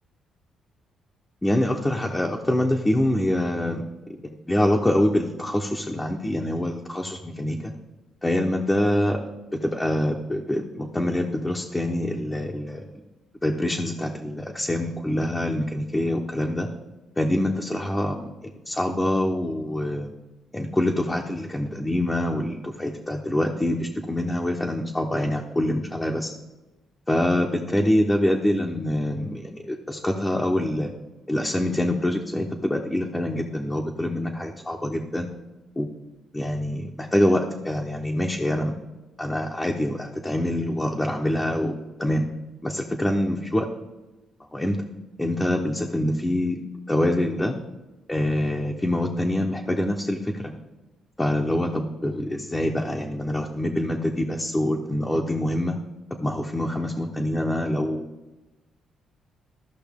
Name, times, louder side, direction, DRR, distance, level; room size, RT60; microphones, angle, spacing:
voice 1, 1.4-3.8 4.2-7.7 8.2-9.2 9.6-12.8 13.4-16.7 17.2-20.1 20.5-26.3 27.1-30.9 31.3-35.3 35.8-35.9 36.3-38.7 39.2-42.3 42.6-43.7 44.5-44.8 45.2-46.6 46.9-47.5 48.1-50.5 51.2-55.8 56.2-58.0, left 1 dB, 15° left, -1 dB, 0.9 m, -25 dB
14.0 x 5.6 x 3.6 m, 1.1 s
cardioid pair, 90°, 0 cm